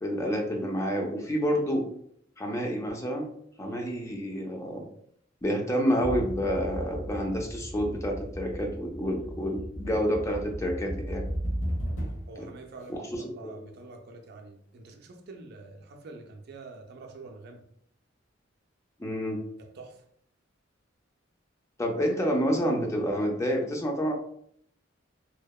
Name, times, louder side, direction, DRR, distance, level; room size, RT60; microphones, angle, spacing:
voice 1, 0.0-1.9 2.4-3.3 3.6-4.8 5.4-11.2 12.9-13.6 19.0-19.5 21.8-24.1, equal, 15° left, 0.3 m, -29 dB
voice 2, 3.6-3.9 12.3-17.6 19.6-20.0, right 3 dB, 55° right, 0.4 m, -46 dB
sound 1, 6.0-12.4, equal, 85° left, 0.9 m, -35 dB
2.7 x 2.1 x 2.2 m
head